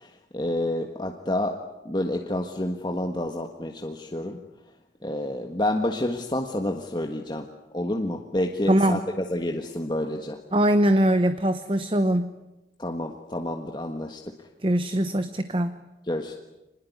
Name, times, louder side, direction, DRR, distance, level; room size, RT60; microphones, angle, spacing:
voice 1, 0.0-1.6 1.8-4.4 5.0-7.5 7.7-10.4 12.8-14.2 16.1-16.3, left 1 dB, 25° left, 3 dB, 1.5 m, -29 dB
voice 2, 8.7-9.0 10.5-12.4 14.6-15.9, right 1 dB, 30° right, 10 dB, 0.9 m, -22 dB
25.5 x 20.5 x 9.6 m, 0.99 s
head